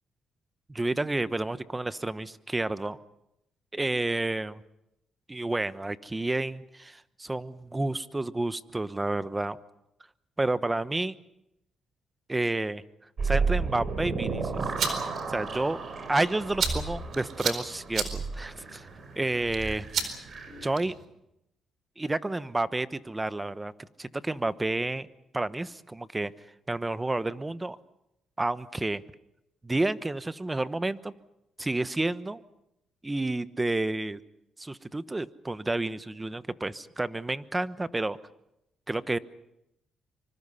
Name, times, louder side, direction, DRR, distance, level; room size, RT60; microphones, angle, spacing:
voice 1, 0.7-3.0 3.7-4.6 5.3-9.6 10.4-11.1 12.3-12.8 13.2-14.7 15.3-15.8 16.1-18.9 19.2-19.8 20.6-20.9 22.0-23.7 24.0-25.1 25.3-26.3 26.7-27.8 28.4-29.0 29.6-31.1 31.6-32.4 33.0-34.2 34.6-38.2 38.9-39.2, right 2 dB, 15° right, 14 dB, 1.0 m, -30 dB
sound 1, 13.2-20.7, right 4 dB, 45° right, 4.2 m, -33 dB
sound 2, 14.5-21.1, right 6 dB, 65° right, 4.4 m, -36 dB
25.0 x 25.0 x 5.7 m, 0.84 s
cardioid pair, 90°, 0 cm